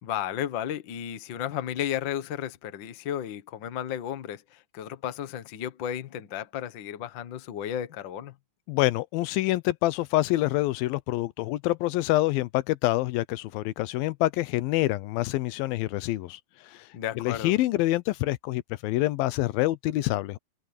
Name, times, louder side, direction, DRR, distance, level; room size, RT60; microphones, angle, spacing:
voice 1, 0.0-8.3 16.9-17.5, left 10 dB, 60° left, 1.2 m, -33 dB
voice 2, 8.7-16.9 17.2-20.4, left 17 dB, 85° left, 2.6 m, -26 dB
omnidirectional pair, 4.1 m